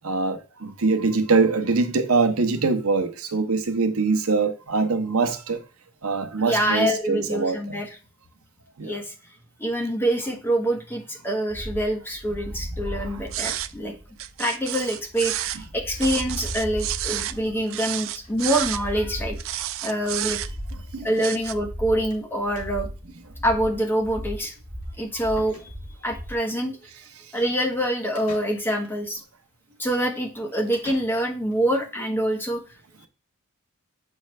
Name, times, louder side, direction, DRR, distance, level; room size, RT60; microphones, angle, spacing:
voice 1, 0.0-5.6 6.0-7.8 8.8-9.0 12.9-13.2 20.9-21.1, right 4 dB, 80° right, 0.9 m, -23 dB
voice 2, 6.5-7.9 8.8-9.1 9.6-13.9 14.4-19.4 19.8-20.4 21.0-22.9 23.4-24.5 25.0-25.7 26.0-26.8 27.3-29.2 29.8-32.6, right 1 dB, 10° left, 1.2 m, -25 dB
sound 1, 11.5-26.4, equal, 20° right, 2.5 m, -37 dB
sound 2, 13.3-13.7 14.2-15.6 16.0-17.4 17.7-18.8 19.4-20.7 21.2-21.5, right 13 dB, 65° right, 0.4 m, -30 dB
sound 3, 14.8-15.9 16.2-16.3 16.6-16.7 16.9-17.0 18.2-18.4 18.7-19.0 19.9-20.0 20.3-20.4 22.1-22.3 22.6-23.0 24.8-24.9 25.4-26.1 28.2-29.0 30.7-31.6, left 2 dB, 85° left, 2.5 m, -48 dB
7.5 x 4.6 x 3.2 m
head